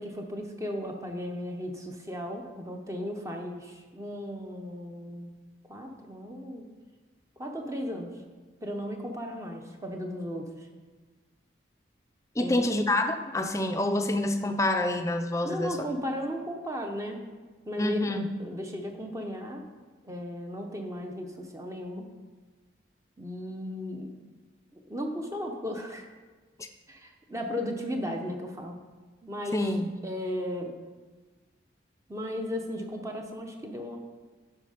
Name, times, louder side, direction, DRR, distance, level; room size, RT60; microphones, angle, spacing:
voice 1, 0.0-5.3 5.7-6.7 7.4-8.1 8.6-10.7 12.4-12.6 15.4-17.2 17.6-19.6 20.0-22.1 23.2-24.1 24.9-26.1 26.9-28.8 29.2-29.7 30.0-30.7 32.1-34.0, equal, 15° right, 3 dB, 0.8 m, -35 dB
voice 2, 12.4-15.9 17.8-18.3 26.6-26.7 29.5-29.9, left 1 dB, 15° left, 7 dB, 0.5 m, -27 dB
12.0 x 4.7 x 5.1 m, 1.3 s
head